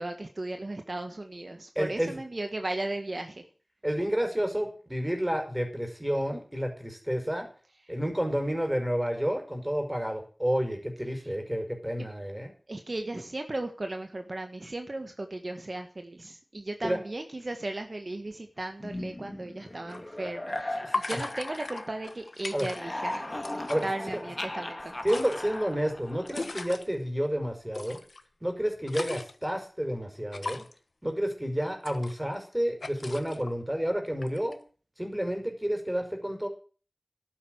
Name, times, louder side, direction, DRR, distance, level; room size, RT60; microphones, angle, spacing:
voice 1, 0.0-3.4 12.7-23.3 23.8-25.0, right 2 dB, 55° right, 5 dB, 1.6 m, -36 dB
voice 2, 1.8-2.2 3.8-7.5 7.9-12.5 16.8-17.0 20.8-21.2 22.5-22.7 23.7-23.9 24.1-24.2 25.0-28.0 28.4-30.6 31.0-34.6 35.0-36.5, equal, 15° right, 4 dB, 5.4 m, -30 dB
sound 1, 18.8-22.3 22.6-26.6, left 1 dB, 30° left, 1.7 m, -38 dB
sound 2, 19.9-20.0 20.9-23.1 23.3-23.9 24.8-26.9 27.7-28.2 28.6-29.5 30.3-30.8 31.6-32.5 32.8-33.5 34.2-34.5, left 3 dB, 85° left, 1.2 m, -37 dB
12.0 x 9.3 x 7.9 m, 0.39 s
wide cardioid pair, 45°, 0 cm